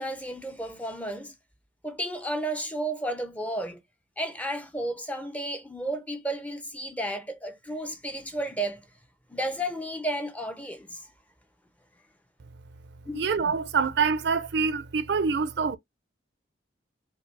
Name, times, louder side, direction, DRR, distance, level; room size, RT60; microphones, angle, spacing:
voice 1, 0.0-1.3 1.8-3.8 4.2-8.8 9.3-11.1 13.1-13.3, right 1 dB, 10° left, 0.6 m, -32 dB
voice 2, 13.1-15.8, right 5 dB, 65° right, 0.5 m, -25 dB
5.2 x 2.7 x 3.1 m
head